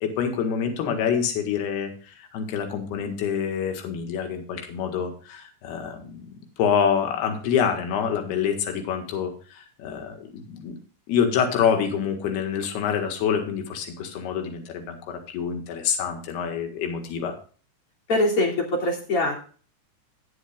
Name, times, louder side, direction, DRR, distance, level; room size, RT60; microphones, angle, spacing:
voice 1, 0.0-6.3 6.6-10.8 11.1-17.3, left 7 dB, 65° left, 4 dB, 3.4 m, -26 dB
voice 2, 18.1-19.4, left 2 dB, 35° left, -2 dB, 3.2 m, -23 dB
18.0 x 7.9 x 2.4 m, 0.40 s
omnidirectional pair, 5.3 m